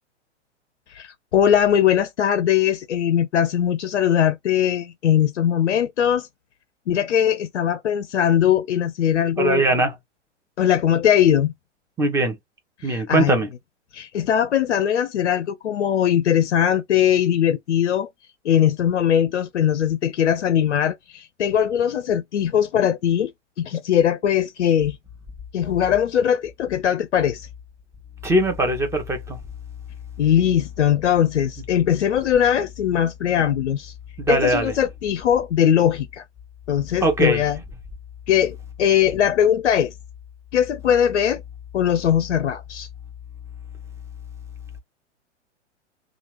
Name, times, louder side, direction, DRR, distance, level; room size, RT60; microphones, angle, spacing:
voice 1, 0.9-6.3 6.9-9.6 10.6-11.5 12.8-13.4 13.9-18.1 18.4-23.3 23.6-25.0 25.5-27.5 30.2-33.9 34.3-36.2 36.7-37.6 38.3-39.9 40.5-41.4 41.7-42.9, left 9 dB, 70° left, 0.5 m, -20 dB
voice 2, 9.4-10.0 12.0-12.4 12.8-13.5 28.2-29.4 34.2-34.7 37.0-37.4, right 2 dB, 10° right, 0.7 m, -21 dB
2.9 x 2.4 x 3.1 m
figure-of-eight pair, 100°, 36 cm